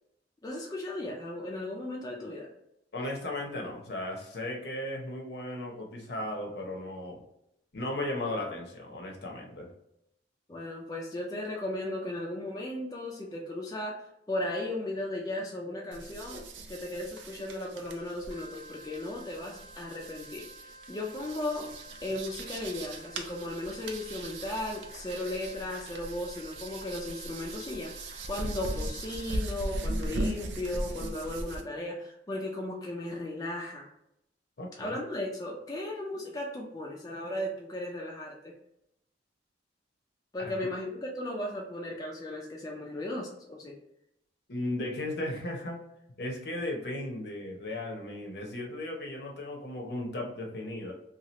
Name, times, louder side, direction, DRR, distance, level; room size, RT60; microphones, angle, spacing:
voice 1, 0.4-2.5 10.5-14.0 14.3-21.7 22.0-33.9 34.8-38.5 40.3-43.8, left 1 dB, 20° left, -2 dB, 0.3 m, -36 dB
voice 2, 2.9-7.2 7.7-9.7 34.6-35.0 40.4-40.5 44.5-45.8 46.2-50.9, left 1 dB, 60° left, 0 dB, 0.7 m, -36 dB
sound 1, 15.9-31.6, right 1 dB, 80° right, 0.5 m, -39 dB
sound 2, 18.3-29.7, right 1 dB, 20° right, 1.0 m, -52 dB
2.8 x 2.3 x 3.0 m, 0.81 s
head